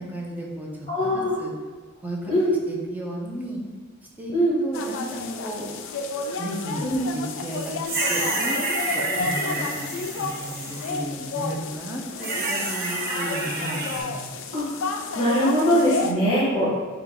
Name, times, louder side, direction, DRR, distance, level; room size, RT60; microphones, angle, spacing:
voice 1, 0.0-0.7 1.0-1.5 2.0-2.3 2.7-3.6 4.2-4.3 4.6-5.7 6.4-6.8 7.1-7.8 8.1-8.6 8.9-14.2, equal, 10° right, -2 dB, 0.5 m, -34 dB
voice 2, 0.9-1.3 2.3-2.5 4.3-4.6 6.8-7.0 9.1-9.2 14.5-16.7, equal, 25° left, -9 dB, 1.0 m, -22 dB
sound 1, 4.7-16.1, left 4 dB, 65° left, 0.3 m, -32 dB
sound 2, 7.3-11.0 12.2-14.0, right 2 dB, 50° right, 0.7 m, -29 dB
3.7 x 2.3 x 3.4 m, 1.5 s
head